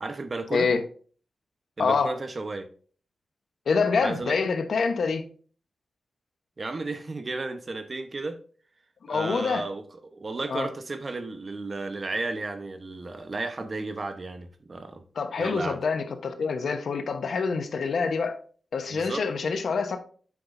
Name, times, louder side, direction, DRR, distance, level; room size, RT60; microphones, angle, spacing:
voice 1, 0.0-0.7 1.8-2.7 4.0-4.4 6.6-8.4 9.1-9.8 10.1-15.0 15.4-15.8 18.9-19.2, right 3 dB, 35° right, 8 dB, 0.9 m, -33 dB
voice 2, 0.5-0.8 1.8-2.1 3.7-5.2 9.0-9.7 10.5-10.7 15.1-18.4 18.7-20.0, left 5 dB, 75° left, 7 dB, 1.0 m, -26 dB
8.5 x 6.0 x 2.6 m, 0.43 s
wide cardioid pair, 115°, 0 cm